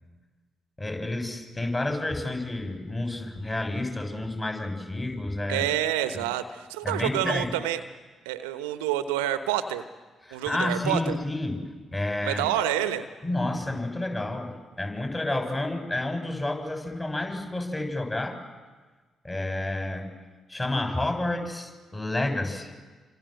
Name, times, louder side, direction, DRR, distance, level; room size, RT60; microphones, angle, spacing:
voice 1, 0.8-5.7 6.8-7.5 10.2-11.6 11.9-12.4 13.2-18.4 19.2-20.1 20.5-22.7, left 2 dB, 20° left, 6 dB, 7.2 m, -30 dB
voice 2, 5.5-7.8 8.2-9.8 10.3-11.2 12.2-13.1, right 12 dB, 75° right, 11 dB, 1.1 m, -28 dB
28.5 x 26.0 x 7.9 m, 1.3 s
figure-of-eight pair, 40°, 0 cm